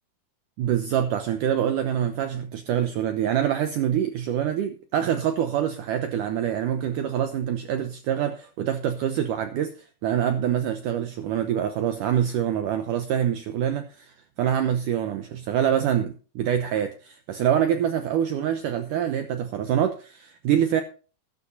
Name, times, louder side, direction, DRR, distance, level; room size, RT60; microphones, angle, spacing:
voice 1, 0.6-9.8 10.0-20.8, right 9 dB, 70° right, 2.2 m, -25 dB
14.5 x 14.0 x 2.7 m
omnidirectional pair, 4.4 m